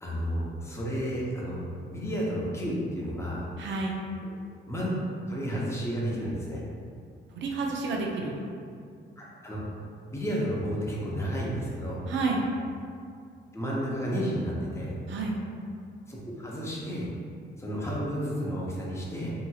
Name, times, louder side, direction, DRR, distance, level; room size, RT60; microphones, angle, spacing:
voice 1, 0.0-3.4 4.2-4.3 4.7-4.9 5.3-6.6 9.2-9.6 10.1-12.0 13.5-14.9 16.1-17.1 17.6-19.3, equal, 15° left, -5 dB, 0.7 m, -32 dB
voice 2, 3.6-4.0 7.3-8.4 12.1-12.4 15.1-15.4, right 3 dB, 70° right, 0 dB, 0.5 m, -30 dB
2.8 x 2.7 x 2.3 m, 2.3 s
cardioid pair, 90°, 20 cm